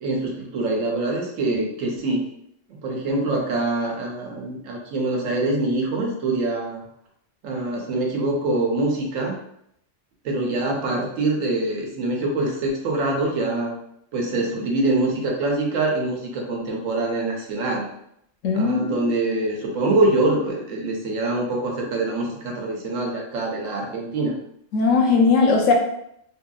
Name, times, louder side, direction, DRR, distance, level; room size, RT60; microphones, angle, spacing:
voice 1, 0.0-2.2 2.7-6.8 7.4-9.4 10.2-13.7 14.1-17.9 18.5-24.3, right 2 dB, 85° right, 0 dB, 1.1 m, -24 dB
voice 2, 18.4-19.0 24.7-25.7, left 4 dB, 80° left, 1 dB, 1.0 m, -18 dB
2.8 x 2.6 x 2.3 m, 0.74 s
omnidirectional pair, 1.3 m